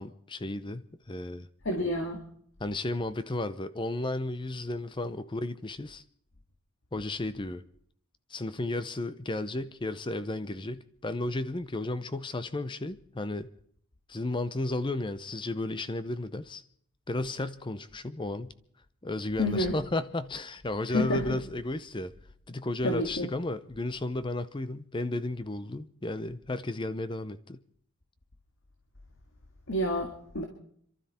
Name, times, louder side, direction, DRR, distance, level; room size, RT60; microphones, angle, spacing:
voice 1, 0.0-1.5 2.6-6.0 6.9-7.6 8.3-13.5 14.1-16.6 17.1-18.5 19.0-22.1 22.5-27.6, left 2 dB, 20° left, 0.6 m, -33 dB
voice 2, 1.7-2.2 19.4-19.7 20.9-21.4 22.8-23.3 29.7-30.4, left 1 dB, 60° left, 1.9 m, -29 dB
27.0 x 12.5 x 4.3 m
head